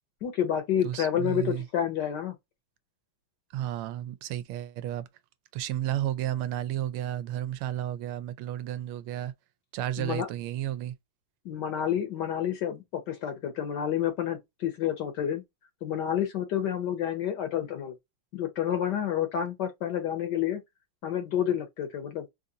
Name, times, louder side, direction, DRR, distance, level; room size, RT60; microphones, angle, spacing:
voice 1, 0.2-2.4 10.0-10.3 11.4-15.4 15.8-17.9 18.3-20.6 21.0-22.2, left 9 dB, 65° left, 1.2 m, -29 dB
voice 2, 0.8-1.6 3.5-5.1 5.5-9.3 9.7-10.9, right 12 dB, 85° right, 1.5 m, -32 dB
4.1 x 2.5 x 2.7 m
omnidirectional pair, 2.4 m